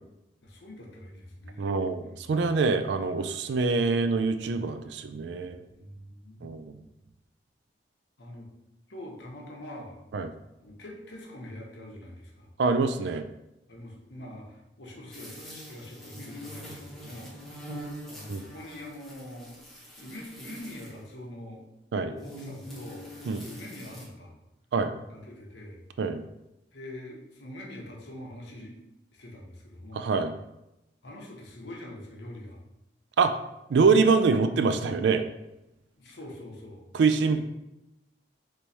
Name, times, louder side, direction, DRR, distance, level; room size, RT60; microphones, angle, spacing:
voice 1, 0.4-2.7 5.7-6.6 8.2-8.5 8.9-10.0 10.6-12.5 13.7-19.6 20.0-21.6 22.1-23.1 23.4-24.3 25.1-25.8 26.7-28.8 29.1-30.1 31.0-32.6 36.0-36.8 37.3-37.4, left 1 dB, 85° left, -1 dB, 0.9 m, -44 dB
voice 2, 1.6-5.6 6.4-6.8 10.1-10.3 12.6-13.3 18.3-18.5 21.9-22.1 23.3-23.4 24.7-24.9 26.0-26.2 29.9-30.3 33.2-33.3 33.7-35.2 36.9-37.4, right 4 dB, 80° right, 9 dB, 0.3 m, -25 dB
sound 1, 15.1-21.1 22.2-24.1, equal, ahead, 0.8 m, -44 dB
3.4 x 3.1 x 4.0 m, 0.91 s
head